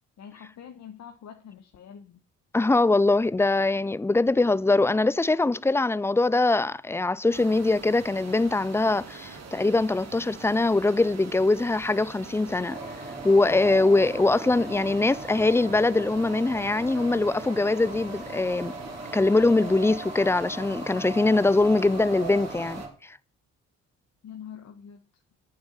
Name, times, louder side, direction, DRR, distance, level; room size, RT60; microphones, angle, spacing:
voice 1, 0.2-2.2 24.2-25.0, left 8 dB, 65° left, 1.4 m, -44 dB
voice 2, 2.5-12.8 13.2-18.7 19.1-22.8 23.1-23.2, left 2 dB, 10° left, 0.4 m, -22 dB
sound 1, 7.3-22.9, right 5 dB, 60° right, 2.4 m, -44 dB
sound 2, 12.7-22.9, right 2 dB, 20° right, 3.3 m, -39 dB
8.9 x 7.2 x 5.6 m
cardioid pair, 90°, 30 cm